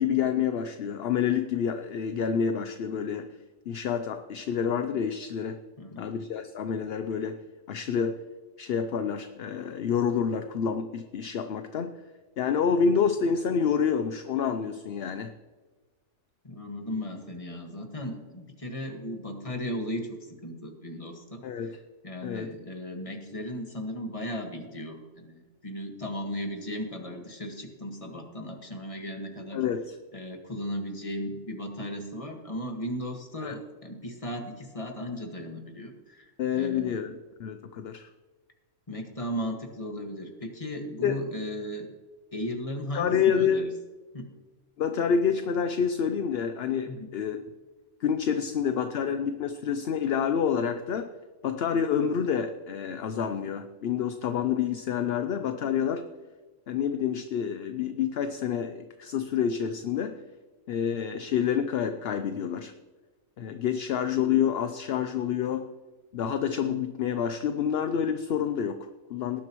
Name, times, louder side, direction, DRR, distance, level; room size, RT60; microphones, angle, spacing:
voice 1, 0.0-3.3 3.7-5.6 6.0-8.3 8.6-12.0 12.4-15.3 21.4-21.8 22.2-22.5 29.5-30.0 33.4-33.5 36.4-38.1 41.0-41.2 42.9-43.6 44.8-47.4 48.0-51.1 51.4-56.1 56.7-60.2 60.7-62.7 63.4-65.7 66.1-69.4, left 7 dB, 55° left, 8 dB, 0.7 m, -28 dB
voice 2, 5.8-6.1 16.4-21.8 22.0-29.6 30.1-37.0 38.9-41.9 42.3-43.7 44.1-44.3 46.9-47.1, equal, 25° left, 3 dB, 1.7 m, -36 dB
18.5 x 11.5 x 3.1 m, 1.3 s
omnidirectional pair, 1.5 m